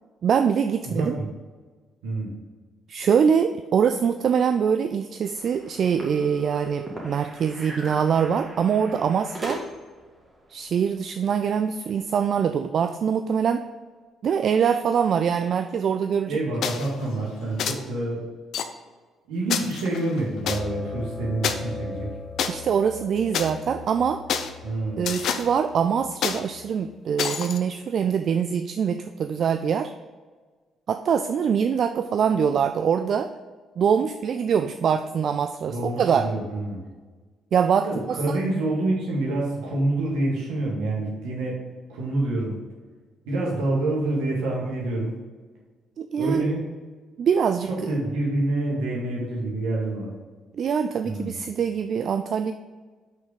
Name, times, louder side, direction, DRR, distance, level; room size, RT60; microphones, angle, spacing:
voice 1, 0.2-1.2 2.9-9.6 10.5-13.6 14.2-16.4 22.5-24.2 25.0-29.9 30.9-33.3 33.8-36.3 37.5-38.4 46.0-46.5 47.2-47.7 50.5-52.5, right 7 dB, 50° right, 8 dB, 0.3 m, -23 dB
voice 2, 0.8-1.3 2.0-2.3 16.3-18.2 19.3-22.1 24.6-25.1 35.7-36.8 37.8-41.6 41.9-42.6 43.3-45.2 46.1-46.6 47.7-50.1 51.0-51.4, right 2 dB, 65° right, -3 dB, 1.9 m, -27 dB
sound 1, 5.3-10.0, right 1 dB, 30° right, 1.8 m, -38 dB
sound 2, 16.6-16.9 17.6-17.8 18.5-18.6 19.5-20.6 21.4-21.5 22.4-22.5 23.3-23.5 24.3-24.5 25.0-25.5 26.2-26.4 27.2-27.6, left 7 dB, 55° left, 0.5 m, -27 dB
sound 3, 20.4-27.0, left 3 dB, 25° left, 1.1 m, -39 dB
5.9 x 5.9 x 5.1 m, 1.4 s
figure-of-eight pair, 45°, 0 cm